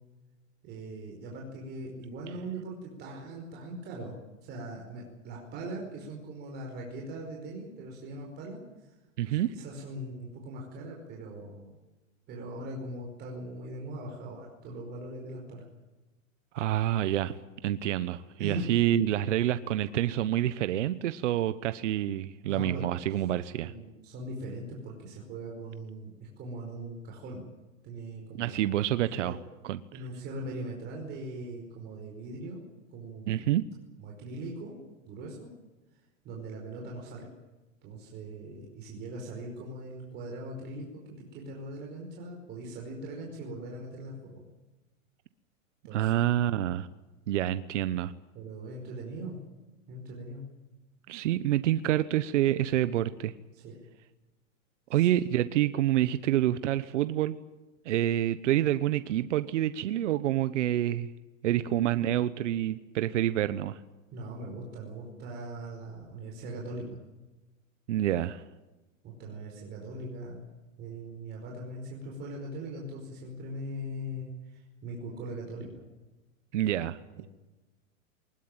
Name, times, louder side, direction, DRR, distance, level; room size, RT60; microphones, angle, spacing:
voice 1, 0.6-4.2 4.4-8.9 9.5-11.8 12.3-15.6 18.4-18.9 22.5-22.8 23.6-27.4 27.8-28.6 29.1-29.4 29.9-32.6 32.9-33.4 34.0-34.8 35.1-35.5 36.2-37.3 37.8-44.4 45.8-46.1 48.3-49.4 49.9-50.4 53.5-53.7 54.9-55.1 61.6-61.7 64.1-67.0 69.0-70.4 70.8-75.9 76.6-76.7 77.1-77.3, right 1 dB, 25° right, -1 dB, 5.0 m, -40 dB
voice 2, 9.2-9.5 16.5-17.3 17.6-23.7 28.4-29.4 29.6-29.8 33.3-33.6 45.9-46.9 47.3-48.1 51.1-53.3 54.9-57.4 57.8-61.1 61.4-63.8 67.9-68.4 76.5-77.0, right 12 dB, 60° right, 13 dB, 1.1 m, -27 dB
20.5 x 20.0 x 9.0 m, 1.1 s
supercardioid pair, 160°, 40 cm